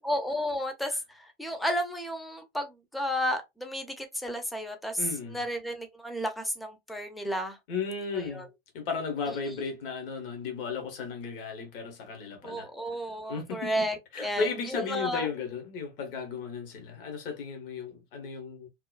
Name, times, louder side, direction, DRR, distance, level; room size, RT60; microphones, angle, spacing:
voice 1, 0.0-5.0 5.3-7.6 8.1-8.5 9.5-9.6 12.4-15.3, equal, ahead, 0.5 m, -32 dB
voice 2, 5.0-5.4 7.7-8.5 8.7-12.7 13.3-13.8 14.1-18.7, left 5 dB, 65° left, 1.1 m, -35 dB
2.9 x 2.1 x 2.3 m
hypercardioid pair, 90°, 30 cm